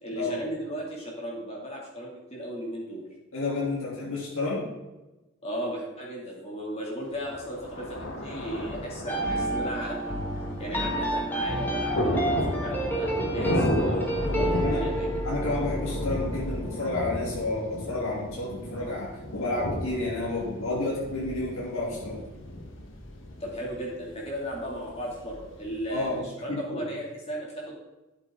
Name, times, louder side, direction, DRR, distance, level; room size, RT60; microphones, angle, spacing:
voice 1, 0.0-3.0 5.4-15.2 23.4-27.7, equal, 30° left, -3 dB, 2.6 m, -36 dB
voice 2, 3.3-4.7 14.6-14.8 15.2-22.2 25.9-26.2 26.5-26.8, left 2 dB, 80° left, -6 dB, 3.2 m, -30 dB
Thunder, 7.2-26.1, left 1 dB, 60° left, 1.5 m, -34 dB
sound 1, 9.1-18.2, right 1 dB, 10° left, 1.4 m, -30 dB
12.5 x 7.9 x 3.8 m, 1.0 s
head